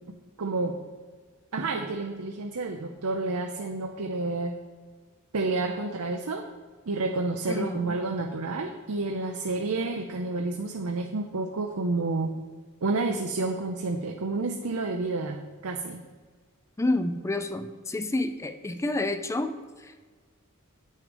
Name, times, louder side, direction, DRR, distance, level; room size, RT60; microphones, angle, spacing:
voice 1, 0.4-0.8 1.5-4.6 5.3-6.5 6.9-12.3 12.8-16.0, right 3 dB, 75° right, 3 dB, 0.7 m, -30 dB
voice 2, 7.5-7.9 16.8-20.1, left 2 dB, 15° left, 9 dB, 0.4 m, -29 dB
8.7 x 6.5 x 5.1 m, 1.5 s
head